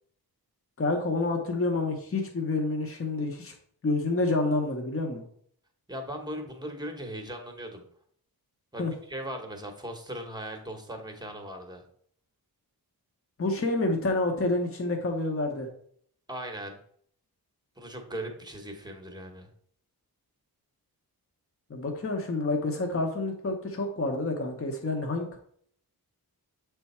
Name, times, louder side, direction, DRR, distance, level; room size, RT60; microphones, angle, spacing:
voice 1, 0.8-3.5 3.8-5.3 8.8-8.9 13.4-15.7 21.7-25.4, left 2 dB, 35° left, 2 dB, 0.9 m, -28 dB
voice 2, 5.9-7.8 8.7-11.8 16.3-16.8 17.8-19.5, right 1 dB, 10° right, 4 dB, 1.0 m, -38 dB
7.5 x 3.5 x 4.2 m, 0.62 s
wide cardioid pair, 150°, 38 cm